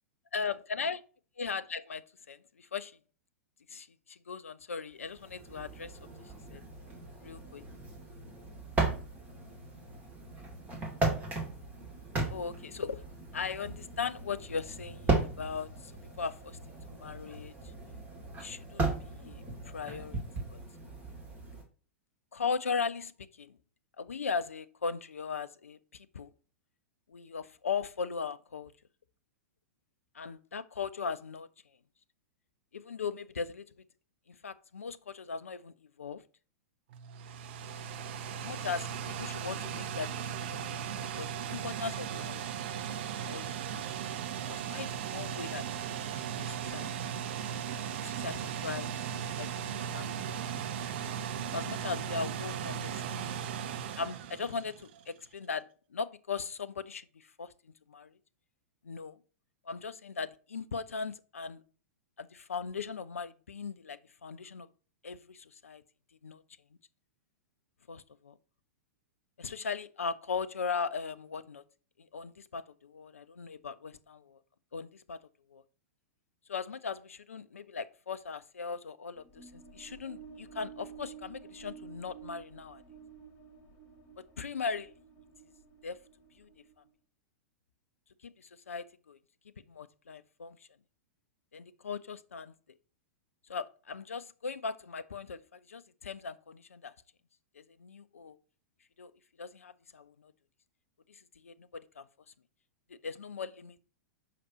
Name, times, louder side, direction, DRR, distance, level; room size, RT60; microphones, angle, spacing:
voice 1, 0.3-1.0 1.4-2.9 3.7-6.0 6.5-6.6 7.2-7.6 12.3-13.0 13.3-15.9 16.2-16.6 16.9-17.5 18.4-20.2 20.5-20.6 22.3-23.1 23.4-23.6 24.0-26.3 27.1-28.7 30.1-31.5 32.7-33.6 34.3-36.2 38.3-38.9 39.2-42.5 43.1-44.2 44.5-45.6 46.1-46.9 48.0-48.9 49.4-50.5 51.5-53.3 54.0-57.5 57.9-58.1 58.8-59.2 59.7-61.6 62.2-64.7 65.0-65.8 66.2-66.4 67.9-68.3 69.4-71.6 72.1-74.4 74.7-75.2 75.5-75.6 76.5-82.8 84.4-84.9 85.8-86.0 86.4-86.5 88.4-89.2 89.7-90.6 91.5-92.5 93.5-96.9 97.6-98.4 99.0-99.1 99.4-100.3 101.1-102.1 102.9-103.8, left 5 dB, 75° left, 0.4 m, -38 dB
sound 1, 5.1-21.6, right 3 dB, 20° right, 2.4 m, -37 dB
sound 2, 36.9-55.0, right 8 dB, 50° right, 0.7 m, -37 dB
sound 3, 79.2-86.9, right 7 dB, 35° left, 1.3 m, -51 dB
6.5 x 5.8 x 2.9 m
figure-of-eight pair, 100°, 8 cm